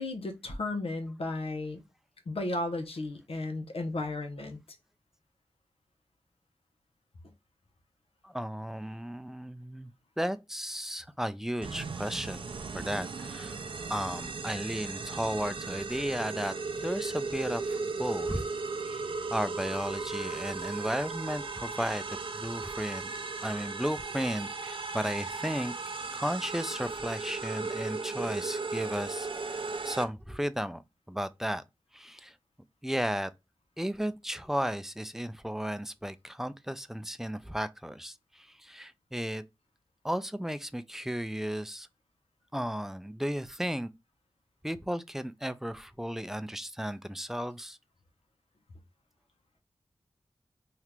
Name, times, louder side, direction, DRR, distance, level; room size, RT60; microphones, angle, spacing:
voice 1, 0.0-1.8 2.3-4.6, left 2 dB, 85° left, 0.8 m, -34 dB
voice 2, 8.2-13.6 13.9-18.5 18.8-19.0 19.3-23.1 23.4-25.7 26.1-30.8 31.1-31.6 31.9-32.3 32.8-33.3 33.8-39.4 40.0-41.9 42.5-43.9 44.6-47.8, equal, 5° right, 0.4 m, -34 dB
sound 1, 11.6-30.0, right 4 dB, 65° right, 0.5 m, -36 dB
2.9 x 2.5 x 3.3 m
wide cardioid pair, 60°, 10 cm